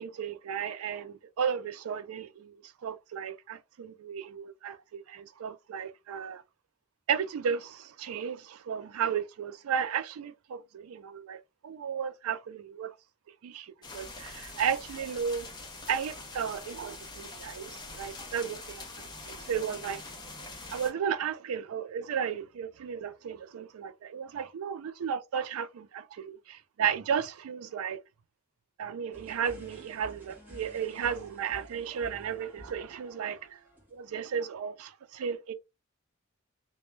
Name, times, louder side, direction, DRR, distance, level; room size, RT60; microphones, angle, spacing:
voice 1, 0.0-6.4 7.1-12.9 13.4-15.5 15.9-20.0 20.7-28.0 28.8-33.6 33.9-35.5, right 7 dB, 80° right, 0.4 m, -34 dB
sound 1, 13.8-20.9, left 2 dB, 20° left, 0.6 m, -44 dB
sound 2, 29.1-34.0, equal, 10° right, 0.8 m, -52 dB
2.2 x 2.0 x 3.0 m
head